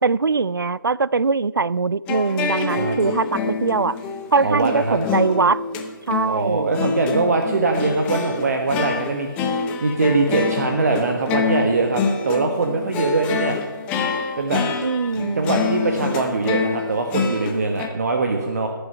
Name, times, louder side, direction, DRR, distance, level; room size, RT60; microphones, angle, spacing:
voice 1, 0.0-4.0 4.3-5.6 6.1-6.8 14.8-15.7, right 4 dB, 85° right, 0.4 m, -22 dB
sound 1, 2.1-17.9, left 5 dB, 10° left, 0.6 m, -26 dB
voice 2, 4.4-5.0 6.2-13.6 14.4-14.6 15.4-18.7, right 3 dB, 50° right, 1.2 m, -22 dB
18.5 x 7.0 x 5.5 m
figure-of-eight pair, 155°, 11 cm